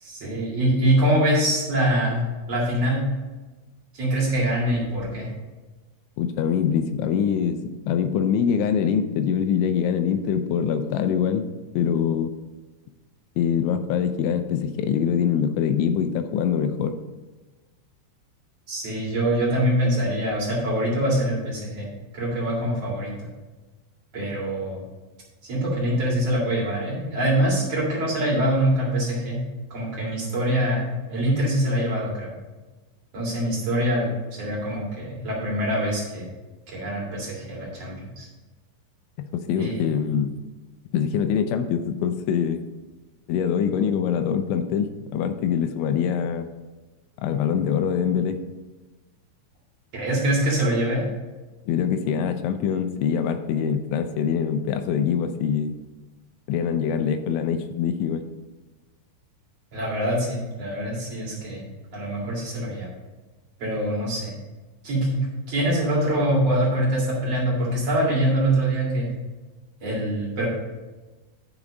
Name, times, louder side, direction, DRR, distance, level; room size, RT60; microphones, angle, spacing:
voice 1, 0.0-3.0 3.9-5.3 18.7-21.9 22.1-23.1 24.1-24.8 25.4-29.4 29.7-32.3 33.1-36.3 36.7-38.3 39.6-39.9 49.9-51.0 59.7-61.6 61.9-62.9 63.6-64.3 64.8-65.2 65.5-69.1 69.8-70.5, right 1 dB, 45° right, -5 dB, 2.3 m, -24 dB
voice 2, 6.2-11.4 11.8-12.3 13.4-17.0 39.3-40.4 40.9-42.6 43.3-46.5 47.2-48.4 51.7-55.8 56.5-58.2, left 7 dB, 80° left, 8 dB, 2.9 m, -24 dB
11.0 x 5.3 x 4.9 m, 1.2 s
omnidirectional pair, 5.6 m